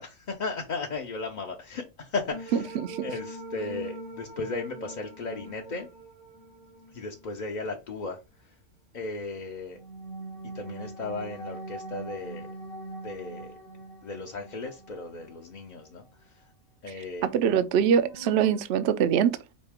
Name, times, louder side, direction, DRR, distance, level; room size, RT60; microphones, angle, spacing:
voice 1, 0.0-5.9 6.9-8.2 8.9-9.8 10.5-12.5 13.0-13.5 14.0-16.0 16.8-17.3, left 3 dB, 45° left, 0.6 m, -35 dB
sound 1, 2.3-7.5 9.7-15.9 16.2-16.3 17.7-18.6, right 2 dB, 90° right, 2.5 m, -42 dB
voice 2, 17.2-19.4, right 8 dB, 65° right, 0.7 m, -23 dB
5.2 x 2.8 x 3.5 m
omnidirectional pair, 1.5 m